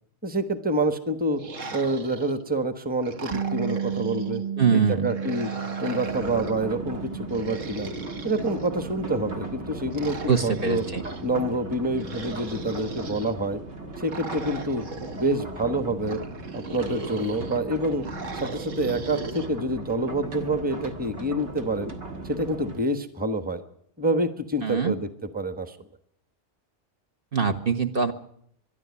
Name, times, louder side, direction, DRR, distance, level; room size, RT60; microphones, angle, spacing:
voice 1, 0.2-1.4 1.7-4.4 4.7-5.5 5.8-7.9 8.2-10.8 11.2-13.6 14.0-14.8 15.1-16.2 16.5-18.0 18.3-21.9 22.2-23.6 24.0-25.8, right 1 dB, 5° right, 9 dB, 1.2 m, -27 dB
sound 1, 1.3-2.5 3.0-4.4 5.0-6.7 7.3-9.0 9.9-11.2 12.0-13.3 14.1-15.4 16.0-17.6 18.0-19.5, right 2 dB, 85° right, 2.1 m, -38 dB
Bass guitar, 3.3-9.6, right 8 dB, 30° right, 1.0 m, -33 dB
voice 2, 4.6-5.1 10.3-11.0 24.6-24.9 27.3-28.1, right 6 dB, 50° right, 6 dB, 1.4 m, -23 dB
sound 2, 6.1-22.8, right 2 dB, 65° right, 2.1 m, -37 dB
23.0 x 11.5 x 9.6 m, 0.70 s
omnidirectional pair, 1.3 m